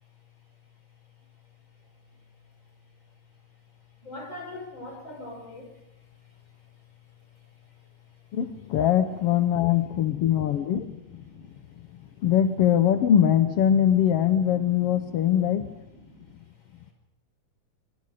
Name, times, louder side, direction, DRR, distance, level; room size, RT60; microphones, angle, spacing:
voice 1, 4.0-5.8 9.9-10.0 10.2-11.5 14.8-14.9 15.9-16.3, left 2 dB, 35° left, 2 dB, 6.5 m, -43 dB
voice 2, 8.3-11.0 12.2-15.7, left 10 dB, 65° left, 8 dB, 1.7 m, -22 dB
26.5 x 23.5 x 5.2 m, 0.87 s
omnidirectional pair, 3.5 m